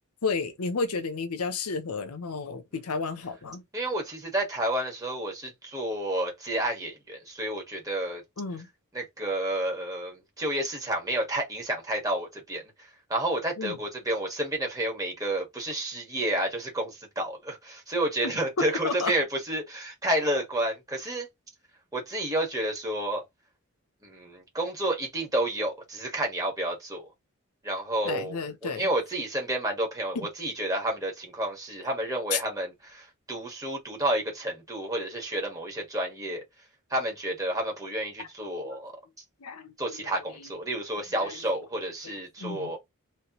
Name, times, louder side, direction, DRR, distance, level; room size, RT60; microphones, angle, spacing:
voice 1, 0.2-3.6 8.4-8.7 13.6-13.8 18.2-18.3 18.6-19.1 28.0-28.9 30.1-30.3 32.3-32.4 38.2-38.3 38.6-38.8 39.4-40.5 41.1-41.4 42.4-42.7, left 4 dB, 80° left, 0.7 m, -32 dB
voice 2, 3.7-8.2 8.9-12.6 13.1-21.3 21.9-23.2 24.0-27.0 27.6-28.4 28.8-36.4 36.9-38.9 39.8-42.8, right 1 dB, 15° right, 1.5 m, -30 dB
3.3 x 3.1 x 3.0 m
head